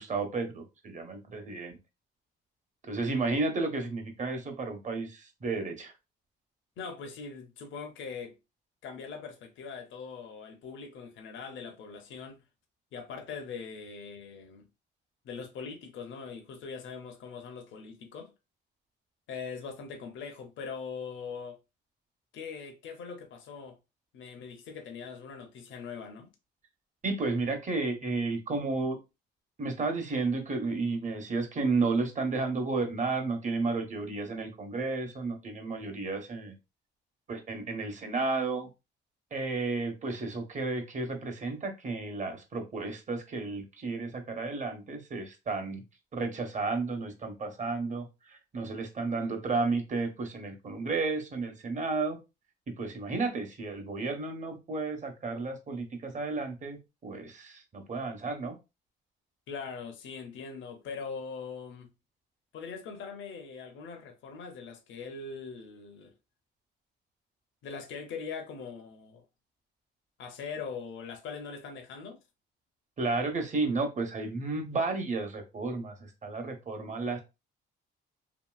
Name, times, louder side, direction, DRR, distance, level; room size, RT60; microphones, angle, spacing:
voice 1, 0.0-1.8 2.8-5.9 27.0-29.0 29.6-36.6 37.3-38.7 39.3-45.8 46.1-52.2 52.7-58.6 73.0-77.2, right 3 dB, 40° right, 0.9 m, -32 dB
voice 2, 6.8-8.4 8.8-12.4 12.9-14.7 15.2-18.3 19.3-21.6 22.3-23.8 24.1-26.3 59.5-61.9 62.5-66.1 67.6-69.2 70.2-72.2, left 5 dB, 75° left, 0.7 m, -41 dB
2.8 x 2.7 x 2.3 m
cardioid pair, 90°, 20 cm